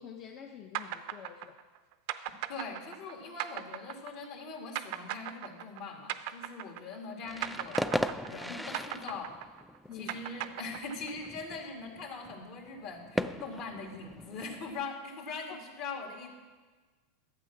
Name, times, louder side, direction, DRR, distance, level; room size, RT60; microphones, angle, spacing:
voice 1, 0.0-1.6 7.2-7.3 8.5-8.7 9.9-10.2 15.5-15.6, left 8 dB, 40° left, 3 dB, 0.7 m, -47 dB
sound 1, 0.7-7.1 7.4-11.3, right 13 dB, 65° right, 0.5 m, -38 dB
voice 2, 2.5-7.9 8.2-9.3 9.9-16.3, left 4 dB, 60° left, 1 dB, 2.3 m, -42 dB
sound 2, 7.2-14.8, equal, ahead, 0.4 m, -38 dB
12.0 x 8.1 x 5.9 m, 1.3 s
supercardioid pair, 125°, 0 cm